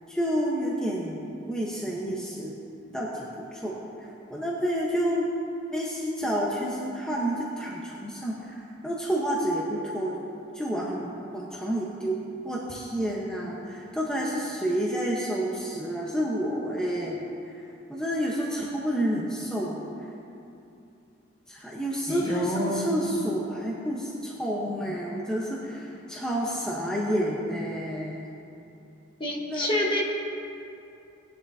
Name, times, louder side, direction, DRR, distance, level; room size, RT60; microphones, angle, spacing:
voice 1, 0.1-1.2 1.4-2.5 2.9-3.3 3.5-5.3 5.7-10.2 10.5-17.3 17.5-17.6 17.9-19.8 21.5-28.2 29.5-29.7, equal, 5° left, -5 dB, 1.0 m, -29 dB
voice 2, 22.1-23.0 29.2-30.0, equal, 25° left, -1 dB, 1.4 m, -28 dB
19.5 x 10.5 x 2.8 m, 2.7 s
head